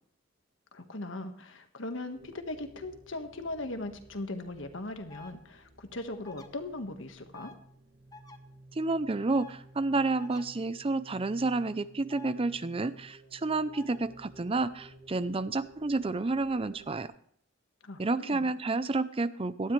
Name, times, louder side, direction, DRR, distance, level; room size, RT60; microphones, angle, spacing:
voice 1, 0.7-7.5 17.8-18.5, left 2 dB, 75° left, 6 dB, 1.6 m, -39 dB
sound 1, 2.1-17.1, right 1 dB, 75° right, 4.0 m, -55 dB
sound 2, 5.1-5.3 6.2-6.5 7.3-7.6 8.1-8.4 9.3-9.5 10.2-10.4 12.1-12.3 13.7-14.0, left 3 dB, 20° left, 1.0 m, -48 dB
voice 2, 8.7-17.1 18.0-19.7, right 3 dB, 30° right, 15 dB, 0.5 m, -30 dB
18.0 x 12.5 x 3.3 m, 0.62 s
head